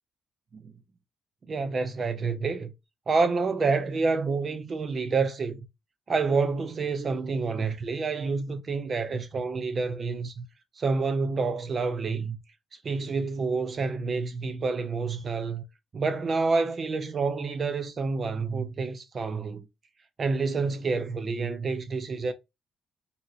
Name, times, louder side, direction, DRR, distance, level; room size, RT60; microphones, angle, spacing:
voice 1, 1.5-2.7 3.1-5.6 6.1-10.5 10.8-12.4 12.7-15.6 15.9-19.7 20.2-22.3, right 4 dB, 45° right, 0.4 m, -28 dB
2.8 x 2.7 x 2.7 m
cardioid pair, 90°, 0 cm